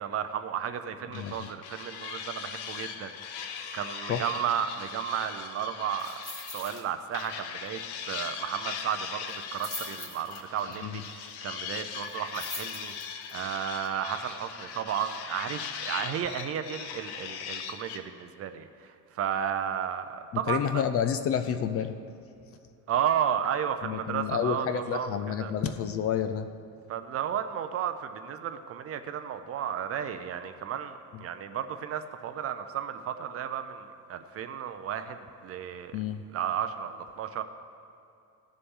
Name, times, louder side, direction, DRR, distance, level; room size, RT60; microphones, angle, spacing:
voice 1, 0.0-6.2 6.5-7.8 8.1-20.8 22.9-25.5 26.9-36.0 36.3-37.4, right 9 dB, 35° right, 9 dB, 0.5 m, -33 dB
sound 1, 1.1-6.8 7.1-18.0, left 7 dB, 75° left, 0.9 m, -40 dB
voice 2, 1.1-1.5 4.1-4.3 10.8-11.0 20.3-22.0 23.8-26.5 31.1-31.2 35.9-36.2, left 8 dB, 35° left, 9 dB, 0.4 m, -29 dB
sound 2, 6.0-6.8 7.1-7.4 7.7-7.8 9.3-10.7 12.0-13.3 13.8-13.9, left 1 dB, 10° left, 1.8 m, -42 dB
17.0 x 6.9 x 3.7 m, 2.7 s
cardioid pair, 165°, 40 cm